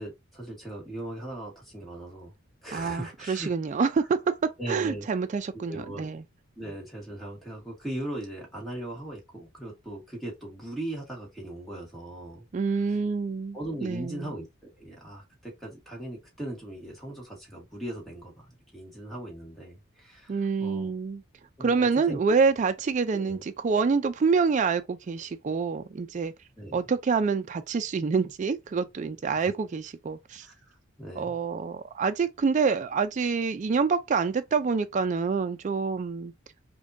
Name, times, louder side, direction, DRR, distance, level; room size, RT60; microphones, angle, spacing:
voice 1, 0.0-2.3 2.6-3.5 4.6-5.1 5.5-6.1 6.6-12.5 13.5-14.5 14.8-20.9 21.6-22.2 23.1-23.4 26.6-26.8 30.4-31.4, right 1 dB, ahead, 1.3 m, -39 dB
voice 2, 2.7-6.2 12.5-14.3 20.3-21.2 21.6-26.3 26.7-30.5 31.2-36.3, right 5 dB, 35° right, 0.3 m, -27 dB
5.1 x 2.2 x 2.6 m
head